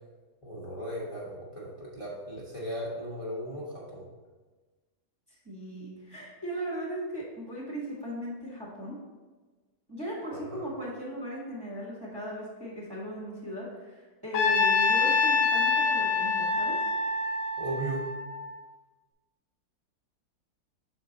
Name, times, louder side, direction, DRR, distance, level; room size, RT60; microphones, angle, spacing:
voice 1, 0.4-4.1 10.3-10.6 17.6-18.1, equal, 25° left, -6 dB, 0.9 m, -37 dB
voice 2, 5.3-9.0 9.9-16.8, equal, 15° right, -5 dB, 1.1 m, -37 dB
Trumpet, 14.3-18.6, left 4 dB, 80° left, 1.3 m, -26 dB
6.5 x 4.3 x 3.9 m, 1.3 s
omnidirectional pair, 1.9 m